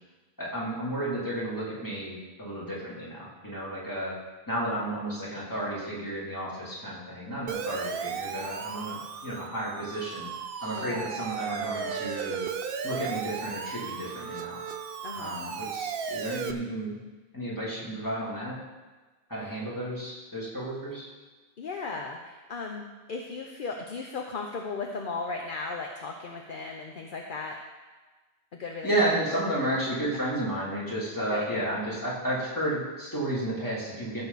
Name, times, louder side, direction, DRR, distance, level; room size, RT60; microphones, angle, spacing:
voice 1, 0.4-4.1 4.5-10.3 10.6-12.4 12.8-14.6 15.1-17.0 17.3-18.6 19.3-21.1 28.8-34.3, right 1 dB, 20° left, -7 dB, 3.2 m, -32 dB
Siren, 7.5-16.5, right 6 dB, 65° right, 0.8 m, -35 dB
voice 2, 10.6-11.1 15.0-15.4 19.4-19.6 21.6-22.8 23.1-27.6 28.5-28.9 31.3-31.5, left 4 dB, 55° left, 2 dB, 0.9 m, -36 dB
15.0 x 6.8 x 4.1 m, 1.3 s
omnidirectional pair, 1.1 m